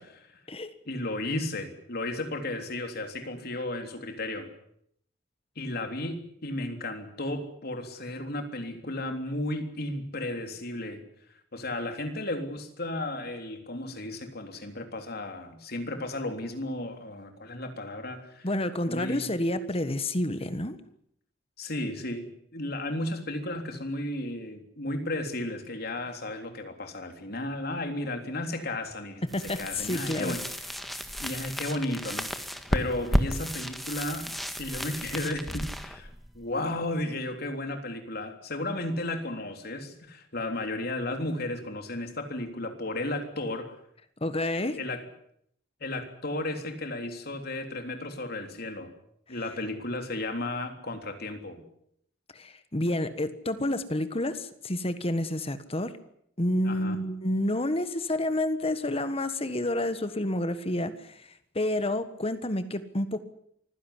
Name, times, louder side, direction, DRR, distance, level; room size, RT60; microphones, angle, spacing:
voice 1, 0.9-4.5 5.6-11.0 11.5-18.5 18.9-19.3 21.6-22.3 22.5-29.2 29.6-30.7 31.2-34.3 34.6-36.1 36.4-43.7 44.8-45.1 45.8-48.9 49.3-51.6 56.7-57.0, left 1 dB, 55° left, 6 dB, 3.5 m, -34 dB
voice 2, 18.4-20.8 29.3-30.4 44.2-44.8 52.3-56.0 56.4-63.2, left 1 dB, 30° left, 12 dB, 1.5 m, -29 dB
sound 1, 29.3-37.0, equal, ahead, 1.6 m, -33 dB
24.5 x 16.0 x 10.0 m, 0.70 s
head